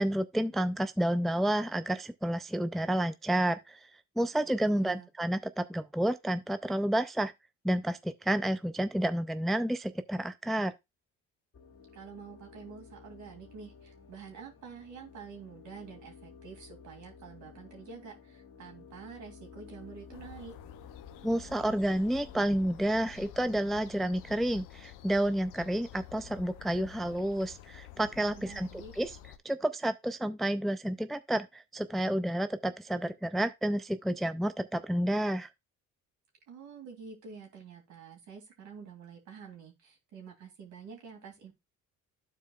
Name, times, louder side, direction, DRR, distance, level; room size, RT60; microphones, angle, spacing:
voice 1, 0.0-3.8 4.2-7.3 7.6-10.7 21.2-28.7 29.0-29.2 29.4-35.5, right 1 dB, ahead, 0.4 m, -30 dB
voice 2, 4.4-5.1 11.9-20.5 28.3-28.9 36.5-41.5, right 5 dB, 70° right, 2.5 m, -48 dB
sound 1, 11.5-23.5, left 5 dB, 45° left, 1.7 m, -53 dB
sound 2, 20.1-29.4, left 12 dB, 85° left, 0.6 m, -50 dB
12.5 x 4.5 x 2.3 m
supercardioid pair, 75°, 31 cm